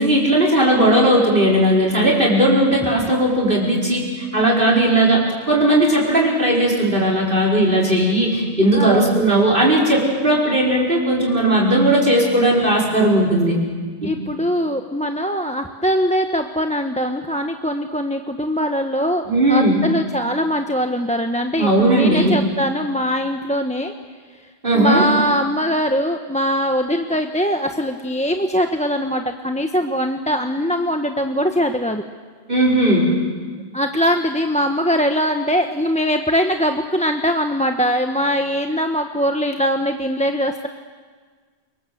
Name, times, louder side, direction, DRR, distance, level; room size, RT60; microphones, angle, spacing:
voice 1, 0.0-13.5 14.0-14.2 19.3-19.8 21.6-22.4 24.6-25.1 32.5-33.1, right 1 dB, 55° right, -4 dB, 5.2 m, -17 dB
voice 2, 8.7-9.3 14.0-19.2 19.5-23.9 24.7-32.0 33.7-40.7, equal, 5° left, 5 dB, 1.0 m, -21 dB
29.0 x 21.5 x 7.9 m, 1.5 s
omnidirectional pair, 1.1 m